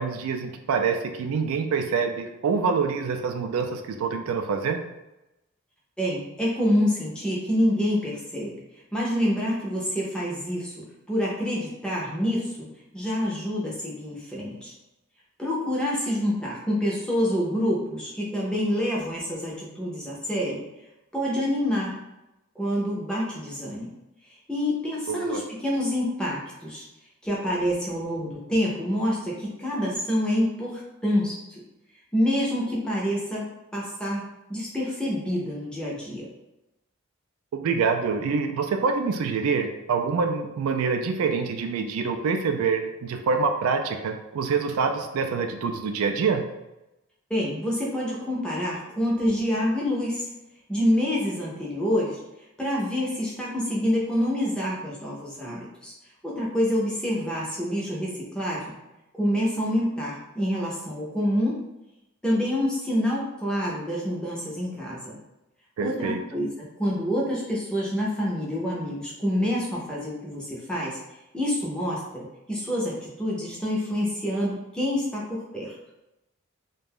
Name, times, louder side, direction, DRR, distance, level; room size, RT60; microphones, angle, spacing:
voice 1, 0.0-4.8 25.1-25.4 37.5-46.4 65.8-66.2, right 5 dB, 75° right, 6 dB, 0.3 m, -26 dB
voice 2, 6.0-8.5 8.9-10.7 11.1-12.6 12.9-14.7 15.4-20.6 21.1-22.0 22.6-23.9 24.5-26.8 27.2-31.6 32.1-33.5 33.7-34.2 34.5-36.3 47.3-50.2 50.7-52.2 52.6-55.9 56.2-58.7 59.2-61.6 62.2-65.2 65.8-66.5 66.8-71.0 71.3-75.7, equal, 5° left, -5 dB, 0.5 m, -27 dB
2.5 x 2.2 x 3.4 m, 0.94 s
head